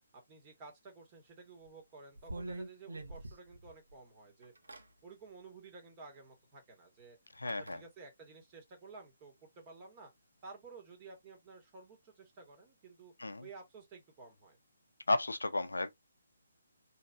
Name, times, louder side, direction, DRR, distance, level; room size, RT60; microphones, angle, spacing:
voice 1, 0.1-4.5 5.0-10.1 10.4-13.1 13.4-14.6, right 4 dB, 25° right, 2.2 m, -53 dB
sound 1, 1.6-1.7 2.1-3.9 4.4-4.9 6.2-6.3 7.5-7.8, right 1 dB, 70° right, 1.1 m, -45 dB
voice 2, 7.4-7.8 13.2-13.5 15.1-15.9, left 2 dB, 75° left, 0.7 m, -33 dB
4.6 x 3.2 x 2.7 m
figure-of-eight pair, 140°, 0 cm